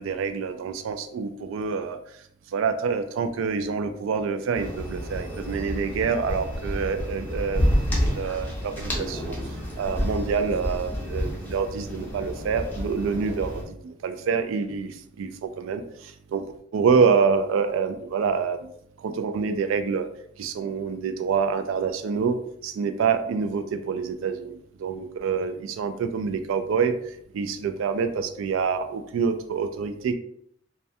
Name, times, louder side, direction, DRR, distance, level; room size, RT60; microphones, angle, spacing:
voice 1, 0.0-2.0 2.5-9.4 9.8-15.8 16.3-16.4 16.7-18.7 19.0-20.1 20.4-22.4 22.6-26.9 27.3-30.1, right 5 dB, 90° right, 9 dB, 0.3 m, -26 dB
sound 1, 4.5-13.6, equal, 10° left, 0.5 m, -29 dB
2.2 x 2.1 x 2.7 m, 0.68 s
head